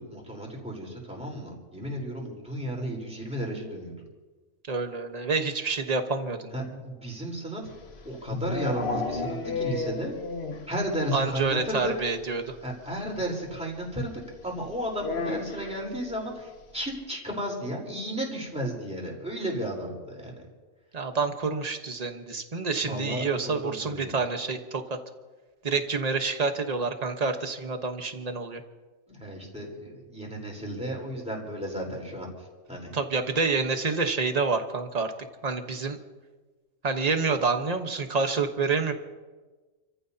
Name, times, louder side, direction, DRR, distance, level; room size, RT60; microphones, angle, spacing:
voice 1, 0.0-4.0 6.5-7.6 8.0-10.1 10.7-11.9 12.6-20.4 22.8-24.1 29.1-32.3 32.7-32.9, equal, 5° right, -2 dB, 4.0 m, -33 dB
voice 2, 4.7-6.8 11.1-12.5 20.9-25.0 25.6-28.6 32.9-35.1 35.4-36.0 36.8-38.9, right 4 dB, 30° right, 6 dB, 1.2 m, -28 dB
sound 1, 7.7-10.8 11.0-11.1 11.4-11.5 11.8-11.9 13.2-13.3 15.0-15.8, left 3 dB, 50° left, 1.3 m, -32 dB
29.5 x 15.0 x 2.8 m, 1.3 s
omnidirectional pair, 1.4 m